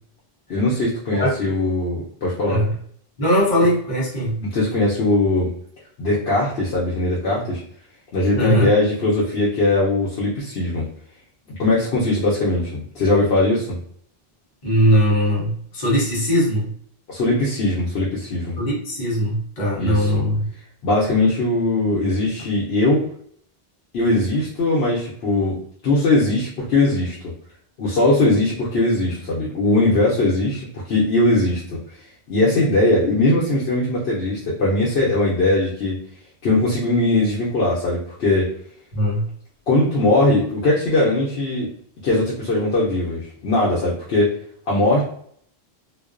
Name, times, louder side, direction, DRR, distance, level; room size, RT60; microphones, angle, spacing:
voice 1, 0.5-2.6 4.4-5.5 6.0-7.6 8.1-10.9 11.5-13.8 17.1-18.6 19.8-20.1 20.8-23.1 23.9-27.3 27.8-31.8 32.3-36.0 36.4-38.5 39.7-41.7 42.0-44.3 44.7-45.0, left 2 dB, 85° left, -5 dB, 0.9 m, -20 dB
voice 2, 1.2-1.6 2.5-2.7 3.2-4.4 8.3-8.7 14.6-16.7 18.6-20.5 38.9-39.3, equal, 50° left, -5 dB, 0.8 m, -20 dB
2.3 x 2.2 x 2.4 m, 0.62 s
omnidirectional pair, 1.0 m